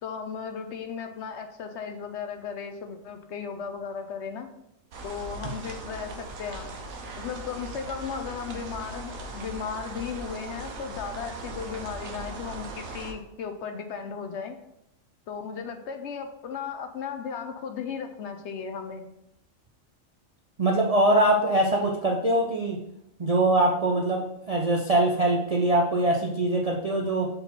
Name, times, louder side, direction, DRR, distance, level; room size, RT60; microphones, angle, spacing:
voice 1, 0.0-4.5 5.0-6.7 7.2-14.6 15.3-19.1, left 6 dB, 65° left, 7 dB, 0.8 m, -36 dB
sound 1, 4.9-13.1, right 2 dB, 80° right, 1.3 m, -39 dB
voice 2, 20.6-22.8 23.2-27.3, right 1 dB, 50° right, -1 dB, 0.4 m, -23 dB
4.4 x 4.0 x 5.4 m, 0.80 s
omnidirectional pair, 1.4 m